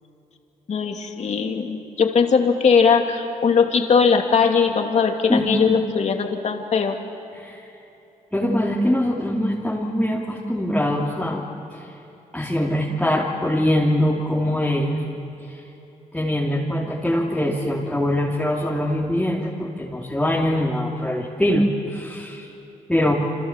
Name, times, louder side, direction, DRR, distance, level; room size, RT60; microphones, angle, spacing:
voice 1, 0.7-7.0, left 5 dB, 55° left, 3 dB, 2.7 m, -19 dB
voice 2, 5.3-5.6 7.3-7.6 8.3-11.4 11.7-11.9 12.3-15.0 15.5-15.6 16.1-22.5 22.9-23.1, left 1 dB, 5° left, -4 dB, 3.3 m, -23 dB
28.5 x 26.5 x 7.5 m, 3.0 s
cardioid pair, 90°, 14 cm